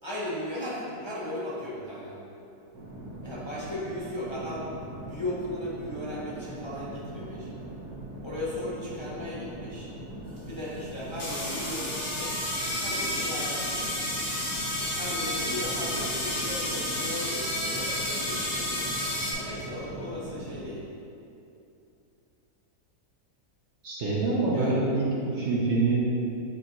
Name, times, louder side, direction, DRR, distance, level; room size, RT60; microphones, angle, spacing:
voice 1, 0.0-2.1 3.2-4.7 4.9-7.5 8.2-9.9 10.5-12.4 12.8-13.9 14.9-18.9 19.3-20.8 24.5-24.8 25.4-25.5, left 1 dB, 25° left, -8 dB, 0.8 m, -36 dB
sound 1, 2.7-20.6, right 1 dB, 75° right, 1.6 m, -41 dB
sound 2, 10.4-10.5 11.1-19.3, left 1 dB, 80° left, 2.0 m, -31 dB
voice 2, 23.8-26.0, right 3 dB, 50° right, -5 dB, 1.0 m, -25 dB
9.0 x 4.0 x 3.0 m, 2.7 s
omnidirectional pair, 1.6 m